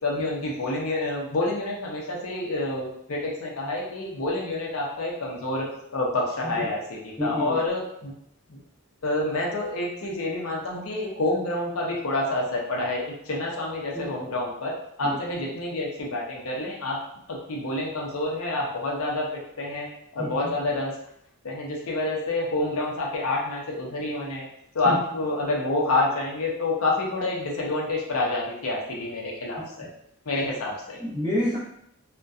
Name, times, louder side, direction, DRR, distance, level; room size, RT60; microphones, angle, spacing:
voice 1, 0.0-5.6 5.9-8.1 8.5-8.6 9.0-14.7 15.0-17.0 17.3-19.3 19.6-19.9 20.1-20.9 21.4-24.5 24.7-29.9 30.3-31.0, left 2 dB, 75° left, -2 dB, 0.6 m, -28 dB
voice 2, 7.2-7.6 13.9-14.1 15.0-15.2 20.2-20.5 24.8-25.0 31.0-31.6, left 1 dB, 15° left, -13 dB, 0.6 m, -28 dB
2.6 x 2.1 x 2.3 m, 0.75 s
head